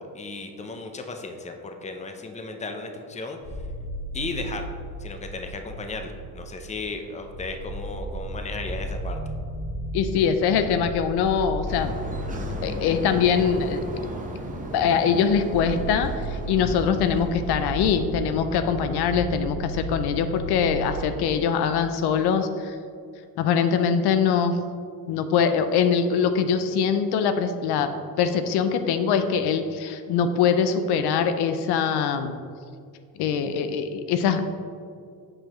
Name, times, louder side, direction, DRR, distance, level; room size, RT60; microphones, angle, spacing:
voice 1, 0.0-3.4 4.1-4.7 5.0-9.2, left 3 dB, 20° left, 5 dB, 0.6 m, -35 dB
sound 1, 3.4-21.2, equal, 35° left, 1.4 m, -35 dB
voice 2, 9.9-11.9 12.6-13.8 14.7-22.8 23.4-24.6 25.1-27.9 28.2-32.3 33.2-34.4, left 7 dB, 80° left, 9 dB, 0.5 m, -23 dB
sound 2, 11.7-18.1, right 1 dB, 20° right, 0.8 m, -36 dB
7.6 x 4.6 x 3.0 m, 2.3 s
cardioid pair, 95°, 39 cm